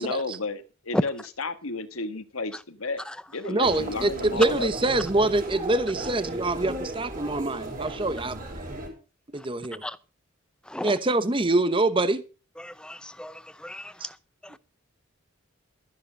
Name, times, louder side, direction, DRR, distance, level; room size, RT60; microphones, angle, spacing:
voice 1, 0.0-3.1 3.3-5.1, left 3 dB, 85° left, 1.6 m, -32 dB
voice 2, 3.5-8.4 9.3-9.8 10.8-12.2 14.0-14.1, right 2 dB, 25° right, 0.8 m, -25 dB
Human voice, 3.6-8.9, right 1 dB, 40° right, 5.8 m, -35 dB
voice 3, 12.6-13.3 13.6-13.8, left 1 dB, 5° left, 0.5 m, -36 dB
13.0 x 10.5 x 5.2 m
head